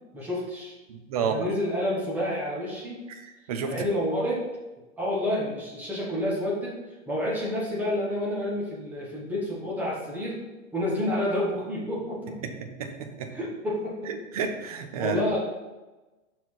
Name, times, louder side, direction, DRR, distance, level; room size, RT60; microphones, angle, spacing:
voice 1, 0.1-0.7 1.2-3.0 3.7-4.4 5.0-10.4 10.7-12.5 13.3-14.1 14.9-15.4, left 1 dB, 5° right, -6 dB, 0.9 m, -29 dB
voice 2, 0.9-1.3 3.5-3.7 12.8-13.3 14.1-15.2, right 6 dB, 30° right, 5 dB, 0.5 m, -30 dB
5.5 x 4.5 x 4.6 m, 1.1 s
hypercardioid pair, 165°, 41 cm